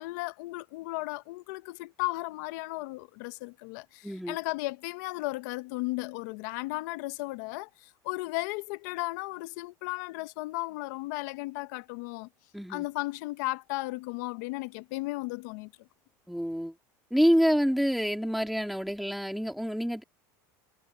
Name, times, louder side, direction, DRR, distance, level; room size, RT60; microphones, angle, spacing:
voice 1, 0.0-12.3 12.7-15.7, left 21 dB, 75° left, 0.7 m, -35 dB
voice 2, 4.0-4.4 12.5-12.9 16.3-16.7 17.1-20.0, equal, ahead, 2.4 m, -27 dB
supercardioid pair, 140°, 10 cm